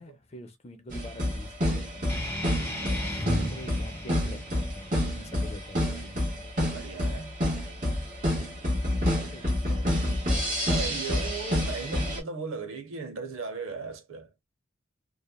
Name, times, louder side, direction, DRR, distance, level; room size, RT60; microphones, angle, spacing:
voice 1, 0.0-2.1 3.0-6.2 8.8-10.1, left 1 dB, 30° left, 0.5 m, -46 dB
sound 1, 0.9-12.2, left 1 dB, 40° right, 1.2 m, -28 dB
sound 2, 2.1-7.1, equal, 10° left, 0.9 m, -37 dB
voice 2, 2.7-3.1 6.7-7.4 10.6-14.3, right 4 dB, 85° right, 0.6 m, -37 dB
3.0 x 2.2 x 2.2 m
head